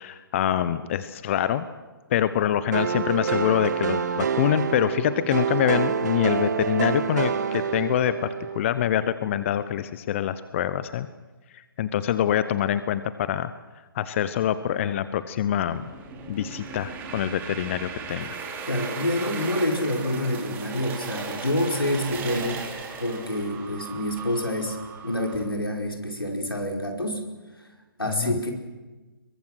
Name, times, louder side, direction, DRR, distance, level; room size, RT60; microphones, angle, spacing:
voice 1, 0.0-1.7 2.1-8.1 8.5-11.1 11.5-13.5 13.9-15.8 16.3-18.3 28.1-28.4, left 10 dB, 35° left, 13 dB, 0.9 m, -25 dB
sound 1, 2.7-8.6, right 6 dB, 50° right, 2.1 m, -27 dB
sound 2, 15.7-25.4, right 5 dB, 15° right, 3.6 m, -37 dB
voice 2, 18.7-22.6 23.0-24.8 25.0-27.2 28.0-28.5, left 1 dB, 90° left, 2 dB, 4.9 m, -27 dB
27.5 x 23.0 x 6.4 m, 1.2 s
figure-of-eight pair, 135°, 12 cm